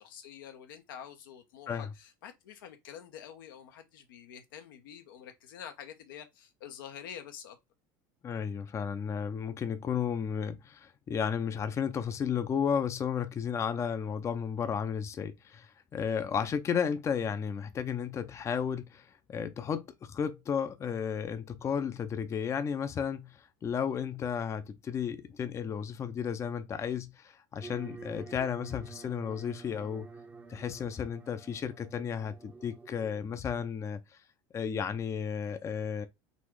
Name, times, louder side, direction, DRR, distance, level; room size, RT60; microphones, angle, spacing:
voice 1, 0.0-7.6, left 9 dB, 85° left, 0.9 m, -47 dB
voice 2, 8.2-30.1 30.5-34.0 34.5-36.1, left 7 dB, 25° left, 0.5 m, -33 dB
sound 1, 27.6-33.2, right 4 dB, 15° right, 0.6 m, -49 dB
4.1 x 2.5 x 4.6 m
supercardioid pair, 110°, 11 cm